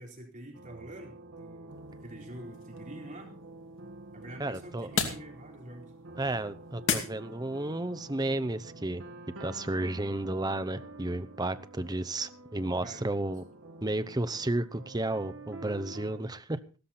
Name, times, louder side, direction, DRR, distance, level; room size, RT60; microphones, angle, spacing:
voice 1, 0.0-3.3 4.1-5.9 12.8-13.0, right 1 dB, 40° right, 1 dB, 3.9 m, -46 dB
sound 1, 0.5-16.2, right 2 dB, 70° right, 1.5 m, -48 dB
sound 2, 1.7-7.8, left 5 dB, 60° left, 2.7 m, -38 dB
voice 2, 4.4-4.9 6.2-9.0 9.4-13.4 13.8-16.6, right 2 dB, 20° right, 12 dB, 0.8 m, -32 dB
16.0 x 13.5 x 4.2 m, 0.35 s
head